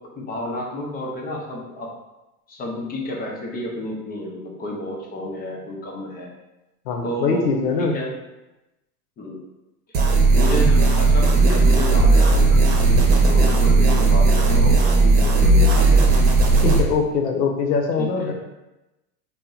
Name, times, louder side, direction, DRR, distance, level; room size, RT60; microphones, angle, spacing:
voice 1, 0.2-1.9 2.5-6.3 7.0-7.5 7.8-8.1 9.2-9.4 10.4-12.6 13.2-16.0 18.0-18.3, left 1 dB, 20° left, -1 dB, 0.5 m, -30 dB
voice 2, 6.8-7.9 16.6-18.3, left 5 dB, 90° left, 3 dB, 0.7 m, -22 dB
sound 1, 9.9-16.8, right 3 dB, 50° right, 0.8 m, -15 dB
2.8 x 2.1 x 3.7 m, 0.99 s
hypercardioid pair, 110°, 47 cm